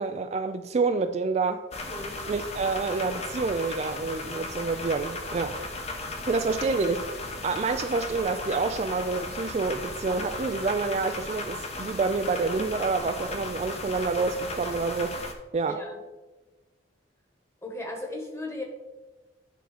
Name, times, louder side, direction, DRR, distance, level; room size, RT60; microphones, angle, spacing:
voice 1, 0.0-1.6 2.3-5.6 6.3-15.2 15.5-15.8, right 4 dB, 35° right, 8 dB, 0.3 m, -28 dB
sound 1, 1.7-15.3, left 2 dB, 35° left, 0.9 m, -36 dB
voice 2, 1.8-2.2 15.6-15.9 17.6-18.6, left 1 dB, 15° left, 1 dB, 1.3 m, -36 dB
10.5 x 3.8 x 5.0 m, 1.2 s
head